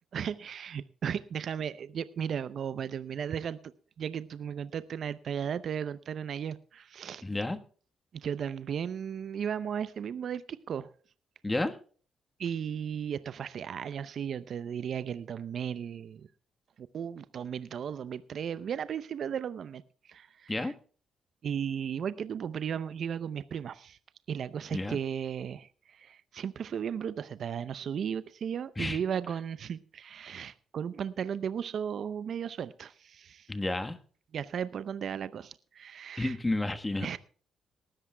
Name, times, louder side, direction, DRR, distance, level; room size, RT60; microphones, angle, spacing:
voice 1, 0.1-3.6 4.0-7.2 8.1-10.9 12.4-16.2 16.8-19.8 20.1-20.7 21.4-24.0 24.3-33.5 34.3-36.4 37.0-37.2, right 8 dB, 60° right, 15 dB, 0.6 m, -35 dB
voice 2, 7.2-7.6 11.4-11.7 20.5-20.7 24.7-25.0 28.8-29.0 33.5-34.0 36.2-37.1, left 2 dB, 20° left, 8 dB, 1.3 m, -31 dB
19.5 x 13.5 x 2.3 m, 0.42 s
supercardioid pair, 55°, 0 cm